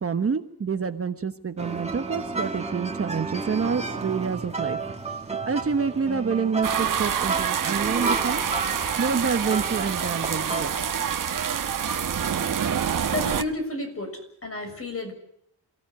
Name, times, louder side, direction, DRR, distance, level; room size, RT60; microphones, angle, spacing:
voice 1, 0.0-4.8 5.5-8.4 9.0-10.7, right 5 dB, 35° right, 8 dB, 1.2 m, -27 dB
sound 1, 1.6-10.6, right 3 dB, 15° right, 2.3 m, -32 dB
sound 2, 6.6-13.4, right 8 dB, 50° right, 1.5 m, -27 dB
voice 2, 13.1-15.1, left 2 dB, 35° left, 6 dB, 6.8 m, -31 dB
28.0 x 16.5 x 9.7 m, 0.71 s
wide cardioid pair, 155°, 40 cm